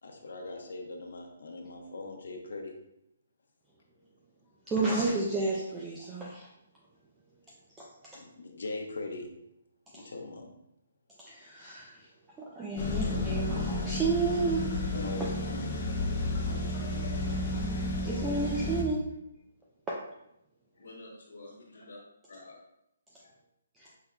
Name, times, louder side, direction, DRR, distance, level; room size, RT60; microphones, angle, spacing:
voice 1, 0.0-2.8 8.1-9.3 9.9-10.5 14.9-15.7, left 3 dB, 70° left, 2 dB, 0.9 m, -40 dB
voice 2, 4.7-6.5 7.8-7.9 9.9-10.1 11.3-12.0 12.6-14.7 17.3-17.8 18.0-19.0 19.9-20.0, right 3 dB, 10° right, -5 dB, 0.4 m, -31 dB
sound 1, 12.8-18.8, left 2 dB, 30° left, 0.8 m, -32 dB
voice 3, 20.8-22.0 22.3-22.6 23.1-23.3 23.8-23.9, left 2 dB, 90° left, -8 dB, 1.4 m, -50 dB
5.7 x 3.6 x 2.2 m, 0.80 s
hypercardioid pair, 175°, 0 cm